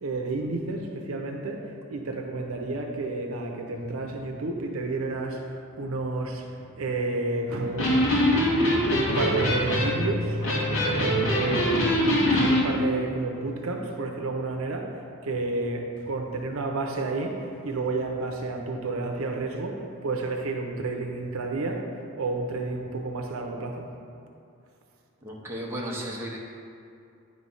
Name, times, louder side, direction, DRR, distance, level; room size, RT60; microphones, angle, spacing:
voice 1, 0.0-8.3 8.9-11.9 12.3-21.8 22.2-23.9, right 2 dB, 75° right, 2 dB, 0.7 m, -31 dB
Electric guitar, 7.6-12.6, equal, 80° left, 1.7 m, -23 dB
voice 2, 25.2-26.4, right 1 dB, 10° right, -3 dB, 0.9 m, -34 dB
9.4 x 3.2 x 5.5 m, 2.6 s
head